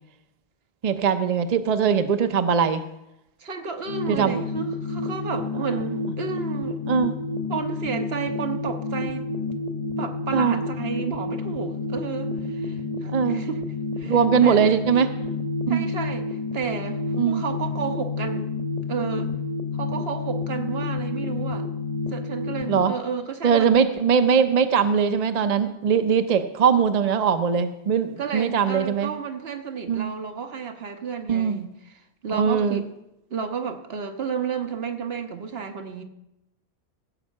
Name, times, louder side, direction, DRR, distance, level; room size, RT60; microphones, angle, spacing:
voice 1, 0.8-2.8 4.1-4.4 6.9-7.1 10.3-10.6 13.0-13.4 14.0-15.1 15.7-15.9 17.2-17.4 22.7-22.9 23.4-29.1 29.9-30.1 31.3-31.6 32.3-32.8, right 7 dB, 45° right, 8 dB, 0.7 m, -21 dB
voice 2, 3.4-6.8 7.5-9.3 10.0-13.6 14.0-14.7 15.7-18.5 18.9-19.4 19.7-21.7 22.1-24.0 28.2-32.9 33.3-36.0, right 6 dB, 70° right, 6 dB, 1.3 m, -32 dB
sound 1, 3.9-22.8, left 3 dB, 40° left, 1.2 m, -30 dB
16.0 x 5.5 x 7.3 m, 0.87 s
omnidirectional pair, 1.1 m